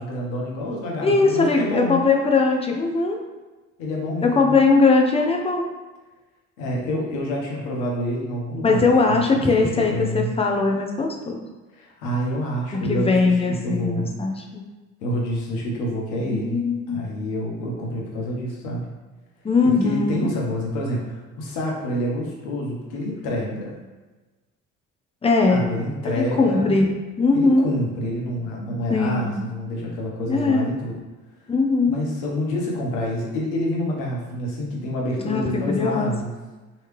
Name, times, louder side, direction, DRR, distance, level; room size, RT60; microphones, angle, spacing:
voice 1, 0.0-2.0 3.8-4.6 6.6-10.3 11.8-14.1 15.0-16.6 16.9-18.9 19.6-23.7 25.5-26.8 27.3-31.0 31.9-36.3, left 1 dB, 75° left, -2 dB, 1.1 m, -28 dB
voice 2, 1.0-3.2 4.2-5.7 8.6-11.4 12.8-14.6 16.2-17.1 19.4-20.3 25.2-25.6 26.0-27.7 28.9-29.4 30.3-30.7 31.5-32.0 35.2-36.1, left 3 dB, 15° left, 1 dB, 0.7 m, -20 dB
3.2 x 3.1 x 3.1 m, 1.2 s
hypercardioid pair, 55°, 38 cm